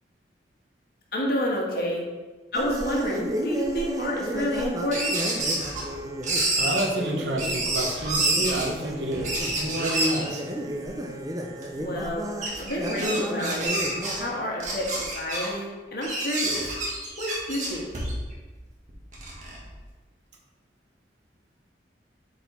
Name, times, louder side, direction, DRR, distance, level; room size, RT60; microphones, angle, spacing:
voice 1, 1.1-2.1 2.5-5.1 11.8-12.3 12.6-13.7 14.2-16.7 17.2-17.9, equal, 55° left, -2 dB, 1.5 m, -29 dB
sound 1, 2.5-14.3, equal, 20° right, 0.5 m, -33 dB
sound 2, 4.9-5.9 6.2-6.8 7.4-8.6 9.1-10.3 10.8-10.9 11.6-11.7 12.4-14.2 14.6-15.5 16.0-18.3 18.9-19.7, right 2 dB, 45° right, 1.7 m, -28 dB
voice 2, 6.6-10.4, right 1 dB, 75° right, 1 dB, 1.1 m, -29 dB
7.7 x 4.1 x 4.2 m, 1.3 s
head